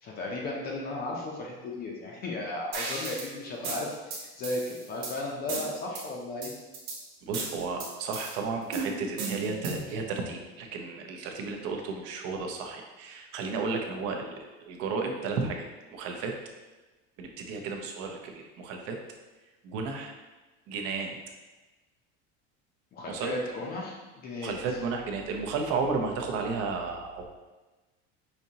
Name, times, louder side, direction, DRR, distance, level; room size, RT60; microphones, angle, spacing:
voice 1, 0.0-6.5 11.2-11.3 22.9-24.5, left 2 dB, 30° left, -2 dB, 0.5 m, -35 dB
sound 1, 2.7-3.3 3.6-5.1 5.5-6.0 6.4-7.0 7.3-8.3 8.7-9.9, right 4 dB, 85° right, 1.1 m, -35 dB
voice 2, 7.2-15.7 15.9-16.3 17.2-19.0 19.6-20.1 20.7-21.1 23.1-23.3 24.4-27.3, right 4 dB, 55° right, 3 dB, 0.6 m, -33 dB
5.1 x 2.7 x 2.8 m, 1.2 s
cardioid pair, 155°, 30 cm